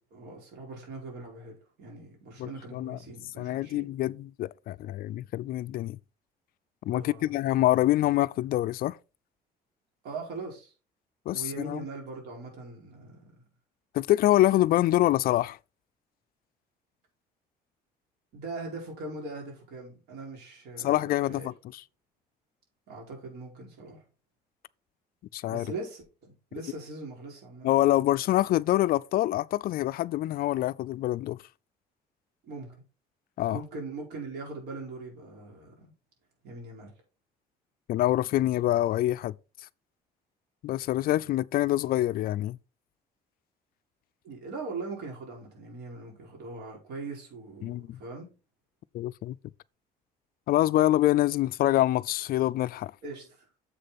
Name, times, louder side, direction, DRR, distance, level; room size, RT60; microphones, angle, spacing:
voice 1, 0.1-3.9 6.9-7.4 10.0-10.7 11.3-13.2 18.3-21.5 22.9-24.0 25.5-27.7 32.5-32.7 33.5-35.9 36.4-36.9 44.2-48.3 53.0-53.3, right 3 dB, 75° right, 4.9 m, -41 dB
voice 2, 2.4-3.0 3.4-6.0 6.9-9.0 11.3-11.9 13.9-15.6 20.8-21.8 25.3-25.7 27.6-31.4 33.4-33.6 37.9-39.3 40.6-42.6 47.6-48.0 48.9-49.4 50.5-52.9, left 15 dB, 60° left, 0.4 m, -26 dB
7.5 x 6.6 x 4.2 m
cardioid pair, 110°, 17 cm